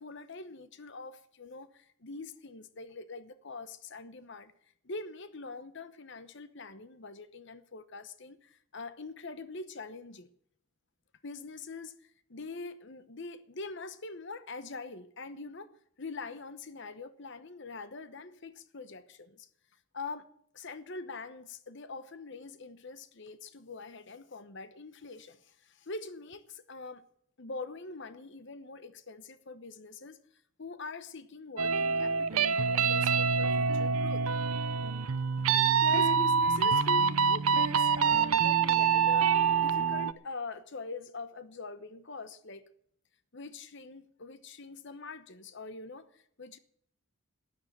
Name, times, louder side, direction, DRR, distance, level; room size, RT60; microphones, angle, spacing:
voice 1, 0.0-4.5 4.8-10.3 11.2-15.7 16.0-19.5 19.9-20.3 20.5-27.0 27.4-30.2 30.6-34.3 35.7-39.3 39.6-42.6 43.3-46.6, left 3 dB, 55° left, 1.0 m, -43 dB
sound 1, 31.6-40.1, right 6 dB, 80° right, 0.6 m, -26 dB
13.0 x 9.7 x 7.6 m
head